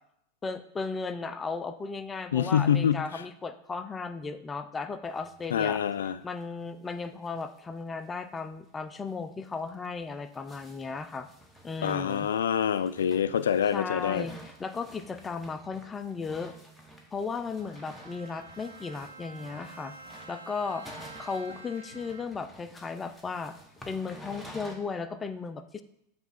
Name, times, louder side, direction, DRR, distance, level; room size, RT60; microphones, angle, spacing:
voice 1, 0.4-5.8 6.2-11.3 11.6-12.3 13.7-16.5 17.1-19.9 20.3-20.9 21.2-23.6 23.9-25.8, left 4 dB, 20° left, 10 dB, 0.5 m, -35 dB
voice 2, 2.3-3.2 5.5-6.2 11.8-14.3, left 8 dB, 80° left, 14 dB, 0.3 m, -26 dB
sound 1, 5.1-5.6 5.9-6.0 6.2-6.3 6.7-6.8 7.0-7.6 7.9-8.0 8.4-8.5 9.0-9.1 9.7-24.8, equal, 5° left, 1.2 m, -51 dB
Bowed string instrument, 17.5-22.6, right 3 dB, 85° right, 0.6 m, -49 dB
8.0 x 3.4 x 4.2 m, 0.77 s
hypercardioid pair, 95°, 0 cm